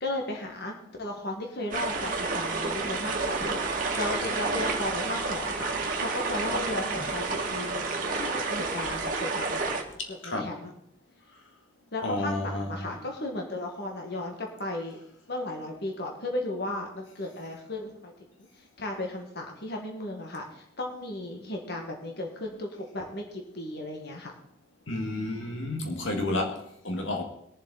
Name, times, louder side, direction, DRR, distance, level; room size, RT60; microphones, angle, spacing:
voice 1, 0.0-9.8 10.1-10.7 11.9-15.0 15.3-18.1 18.6-24.3, left 2 dB, 55° left, 1.8 m, -35 dB
sound 1, 1.7-9.8, right 3 dB, 45° right, 1.9 m, -30 dB
voice 2, 10.0-10.6 12.0-13.0 24.9-27.2, left 2 dB, 80° left, 1.9 m, -31 dB
21.0 x 7.3 x 4.1 m
head